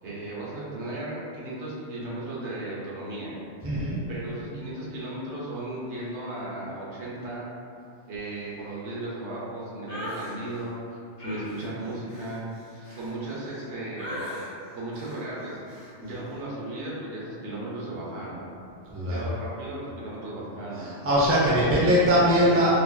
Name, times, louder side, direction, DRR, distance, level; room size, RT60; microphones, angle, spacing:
voice 1, 0.0-3.3 4.1-7.4 8.1-12.5 13.0-14.2 14.7-15.6 16.0-18.4 19.0-20.9 21.5-22.7, right 1 dB, 75° right, -6 dB, 1.1 m, -35 dB
voice 2, 3.6-4.0 12.9-13.0 18.9-19.3 20.8-22.8, equal, 15° right, -8 dB, 0.5 m, -22 dB
sound 1, 9.9-10.4 11.2-13.6 14.0-14.5 14.9-15.3 15.7-15.9, left 1 dB, 30° left, 0.8 m, -39 dB
4.0 x 2.7 x 2.3 m, 2.4 s
omnidirectional pair, 1.2 m